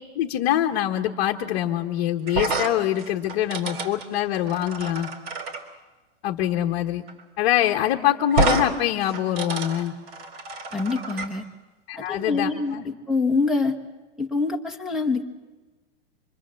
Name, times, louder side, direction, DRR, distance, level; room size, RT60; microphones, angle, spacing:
voice 1, 0.1-5.1 6.2-7.0 7.4-9.9 11.9-12.9, left 12 dB, 30° left, 1 dB, 1.2 m, -24 dB
sound 1, 2.3-5.6 7.1-7.2 7.5-7.6 8.3-8.7 9.0-11.3, right 3 dB, 55° right, 3.7 m, -28 dB
voice 2, 10.7-11.4 11.9-13.8 14.2-15.3, left 3 dB, ahead, 6 dB, 1.0 m, -25 dB
26.5 x 24.0 x 7.6 m, 1.2 s
supercardioid pair, 175°, 36 cm